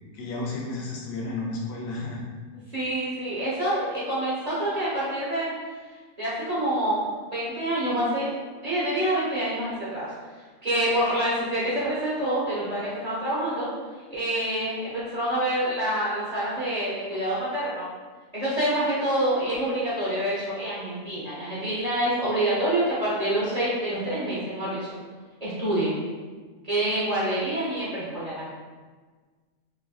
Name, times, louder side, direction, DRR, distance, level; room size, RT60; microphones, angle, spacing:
voice 1, 0.1-2.2, left 2 dB, 85° left, -3 dB, 1.1 m, -32 dB
voice 2, 2.7-5.5 6.2-7.1 7.3-8.3 8.6-10.1 10.6-13.7 14.1-17.9 18.3-24.9 25.4-25.9 26.6-28.5, right 1 dB, 40° right, -9 dB, 0.6 m, -27 dB
3.2 x 2.4 x 2.3 m, 1.4 s
omnidirectional pair, 1.4 m